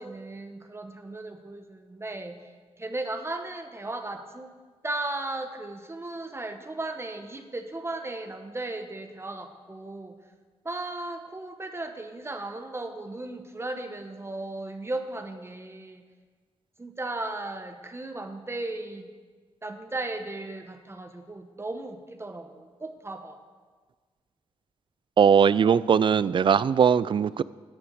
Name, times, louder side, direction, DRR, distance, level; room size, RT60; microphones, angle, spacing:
voice 1, 0.0-2.4 2.8-4.5 4.8-10.2 10.6-16.0 16.8-19.1 19.6-23.4, right 2 dB, 25° right, 7 dB, 0.9 m, -36 dB
voice 2, 25.2-27.4, right 7 dB, 45° right, 18 dB, 0.4 m, -20 dB
11.0 x 6.8 x 7.0 m, 1.5 s
cardioid pair, 75°, 11 cm